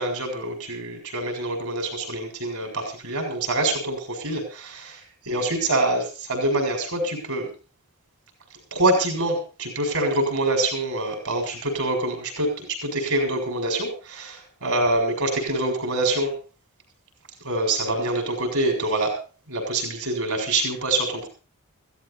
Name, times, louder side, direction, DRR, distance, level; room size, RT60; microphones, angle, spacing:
voice 1, 0.0-7.5 8.7-16.3 17.4-19.2 19.5-21.3, right 2 dB, 80° right, 4 dB, 7.1 m, -25 dB
16.0 x 16.0 x 4.2 m, 0.34 s
head